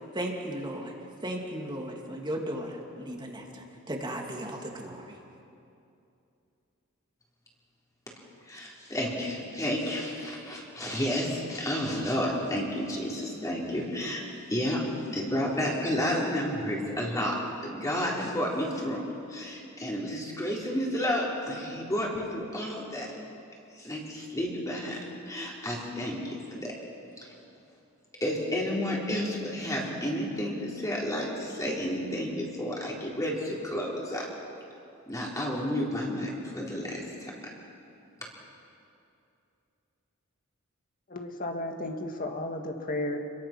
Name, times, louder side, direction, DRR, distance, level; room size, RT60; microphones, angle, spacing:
voice 1, 0.1-0.9 1.2-5.1, right 1 dB, 20° right, 1 dB, 2.7 m, -36 dB
voice 2, 8.5-14.2 14.5-14.8 15.1-17.4 17.6-23.1 23.8-25.0 25.3-26.7 27.2-27.3 28.2-34.3 35.1-37.3, equal, 15° left, -4 dB, 3.9 m, -31 dB
voice 3, 41.1-43.2, left 1 dB, 40° left, 3 dB, 2.0 m, -33 dB
29.5 x 22.5 x 6.1 m, 2.7 s
head